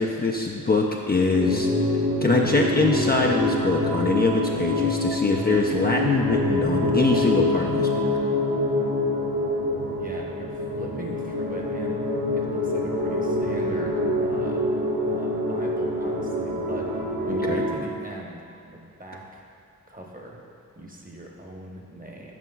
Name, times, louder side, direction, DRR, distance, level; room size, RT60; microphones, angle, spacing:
voice 1, 0.0-1.7 2.2-8.1 17.3-17.6, left 3 dB, 30° left, -1 dB, 0.4 m, -23 dB
sound 1, 1.3-17.8, left 1 dB, 75° right, 1.2 m, -25 dB
sound 2, 9.6-17.5, right 2 dB, 50° right, 1.0 m, -45 dB
voice 2, 9.9-12.0 12.3-14.7 15.1-19.4 19.9-20.4 20.8-22.3, right 1 dB, 25° right, -1 dB, 0.9 m, -40 dB
9.3 x 5.9 x 2.3 m, 2.5 s
wide cardioid pair, 70°, 35 cm